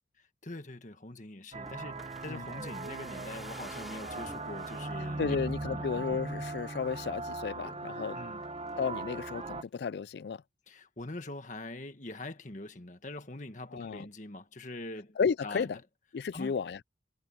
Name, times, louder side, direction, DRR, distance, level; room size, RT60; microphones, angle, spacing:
voice 1, 0.4-5.4 5.6-6.0 8.1-8.4 10.7-15.7 16.3-16.5, left 2 dB, 45° left, 1.7 m, -43 dB
sound 1, 1.5-9.6, right 2 dB, 35° right, 0.9 m, -39 dB
sound 2, 1.7-4.9 5.5-6.1 6.5-6.6 6.8-7.2 7.7-8.0 8.4-9.1 9.4-9.5, equal, ahead, 3.6 m, -51 dB
voice 2, 5.2-8.2 8.8-10.4 13.7-14.1 15.2-15.8 16.1-16.8, left 6 dB, 65° left, 0.3 m, -33 dB
head